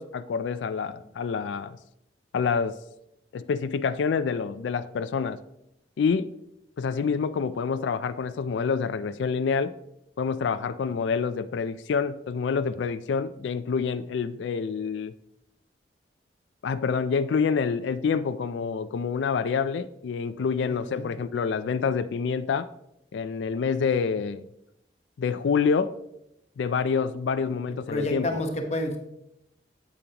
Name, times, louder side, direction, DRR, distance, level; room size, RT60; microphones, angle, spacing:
voice 1, 0.0-1.8 2.3-2.8 3.3-5.4 6.0-6.3 6.8-9.7 10.2-15.1 16.6-22.7 23.1-24.5 25.2-25.9 26.6-28.4, left 5 dB, 90° left, 13 dB, 0.4 m, -27 dB
voice 2, 20.6-21.1 27.4-27.5 27.9-29.0, left 1 dB, 40° left, 4 dB, 1.1 m, -30 dB
8.7 x 8.4 x 2.9 m, 0.84 s
head